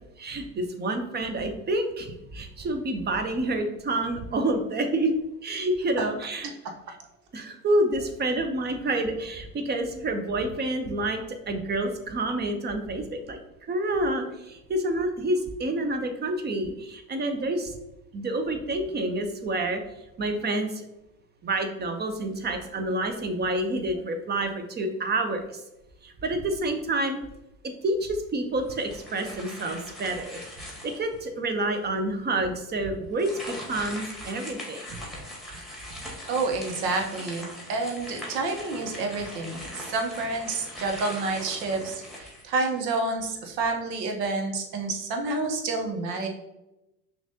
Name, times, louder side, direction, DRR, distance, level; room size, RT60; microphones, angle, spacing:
voice 1, 0.2-5.1 5.4-6.5 7.3-11.2 11.5-13.4 13.7-17.7 18.1-19.8 20.2-20.8 21.4-25.6 26.0-27.2 27.8-30.4 30.8-35.0, right 1 dB, 20° right, 7 dB, 0.5 m, -28 dB
sound 1, 28.7-31.2 31.8-31.9 33.1-42.9, left 1 dB, ahead, 1.4 m, -41 dB
voice 2, 36.3-46.3, right 3 dB, 75° right, 3 dB, 1.0 m, -29 dB
6.0 x 2.5 x 2.7 m, 0.93 s
hypercardioid pair, 75°, 50 cm